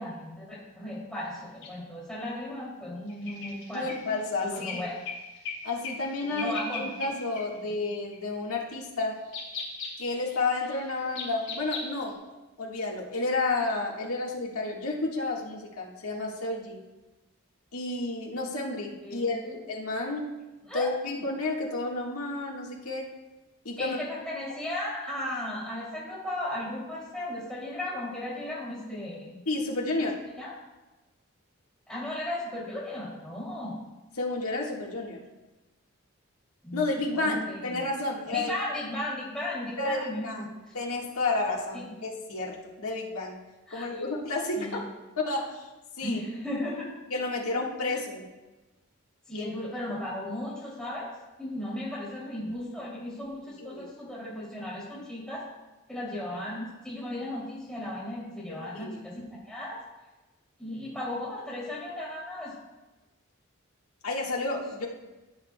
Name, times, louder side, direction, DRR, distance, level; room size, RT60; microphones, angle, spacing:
voice 1, 0.0-3.9 4.4-5.0 6.3-6.8 19.0-19.6 20.7-20.8 23.8-29.4 30.0-30.1 30.4-30.5 31.9-33.8 36.6-36.8 37.1-37.8 38.3-40.4 41.7-41.8 43.7-44.1 44.5-44.8 46.0-46.9 47.9-48.0 49.3-51.1 51.4-55.4 55.9-59.8 60.6-62.5, left 1 dB, 5° left, -7 dB, 2.9 m, -36 dB
sound 1, 1.6-1.7 3.1-5.6 5.8-6.1 6.3-7.1 7.3-7.4 8.1-8.3 9.2-12.1, left 4 dB, 60° left, 3.1 m, -38 dB
voice 2, 3.7-4.9 5.6-9.2 10.0-12.2 12.6-16.8 17.7-20.4 20.7-23.0 23.7-24.0 29.5-30.2 34.2-35.2 36.7-38.5 39.8-40.4 40.7-43.4 43.7-45.7 46.0-46.2 47.1-48.2 49.3-49.5 53.6-53.9 58.5-59.0 64.0-64.9, left 2 dB, 85° left, -2 dB, 1.8 m, -31 dB
15.5 x 8.3 x 2.3 m, 1.1 s
head